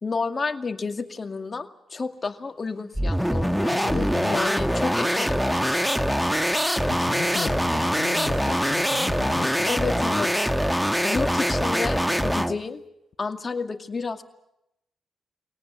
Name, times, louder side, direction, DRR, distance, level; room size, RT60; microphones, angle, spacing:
voice 1, 0.0-3.8 4.3-5.8 9.7-10.3 11.0-12.8 13.2-14.2, left 4 dB, 40° left, 6 dB, 2.4 m, -30 dB
sound 1, 2.5-10.4 11.2-12.1, right 3 dB, 85° right, 3.6 m, -48 dB
sound 2, 2.9-12.6, equal, ahead, 1.3 m, -23 dB
voice 2, 3.7-4.4 6.8-10.3, left 6 dB, 60° left, 6 dB, 1.2 m, -35 dB
24.5 x 18.5 x 8.3 m, 0.80 s
supercardioid pair, 50°, 0 cm